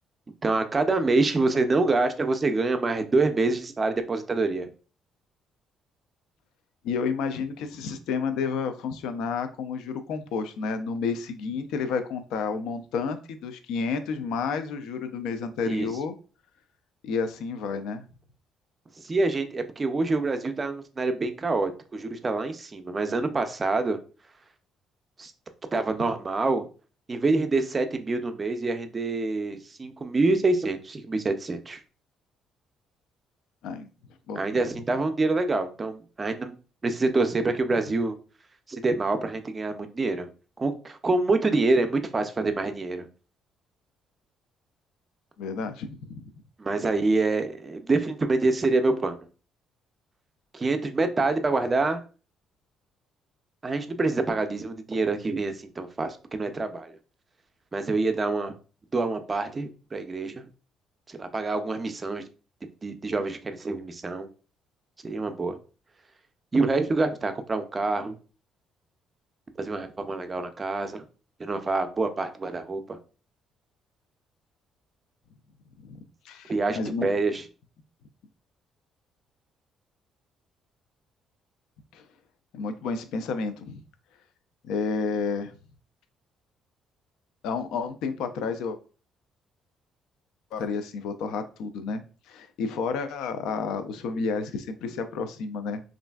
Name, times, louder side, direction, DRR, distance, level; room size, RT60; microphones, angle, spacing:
voice 1, 0.4-4.7 15.7-15.9 19.0-24.0 25.2-25.3 25.7-26.7 27.1-31.8 34.4-36.5 36.8-38.1 38.7-40.3 40.6-43.1 46.6-49.3 50.5-52.0 53.6-57.0 57.7-58.5 58.9-60.5 61.1-62.2 62.8-64.3 65.0-65.6 66.5-68.1 69.6-71.0 71.4-73.0 76.5-77.4, right 3 dB, 25° right, 8 dB, 0.4 m, -26 dB
voice 2, 6.8-16.1 17.0-18.0 33.6-33.9 34.3-34.4 45.4-46.2 75.8-76.0 76.2-77.1 81.9-82.0 82.5-83.8 84.6-85.5 87.4-88.8 90.5-95.8, left 5 dB, 85° left, 9 dB, 0.3 m, -30 dB
3.1 x 2.5 x 2.2 m, 0.36 s
cardioid pair, 130°, 0 cm